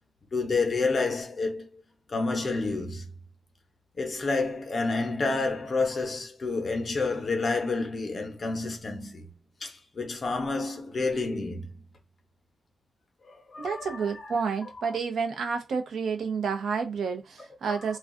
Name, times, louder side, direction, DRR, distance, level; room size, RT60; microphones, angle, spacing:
voice 1, 0.3-1.7 2.1-3.0 4.0-9.3 9.6-11.8 13.2-14.3 17.6-17.8, left 3 dB, 35° left, 0.7 m, -29 dB
voice 2, 13.6-18.0, right 5 dB, 80° right, 0.7 m, -30 dB
2.4 x 2.3 x 3.6 m
wide cardioid pair, 155°, 0 cm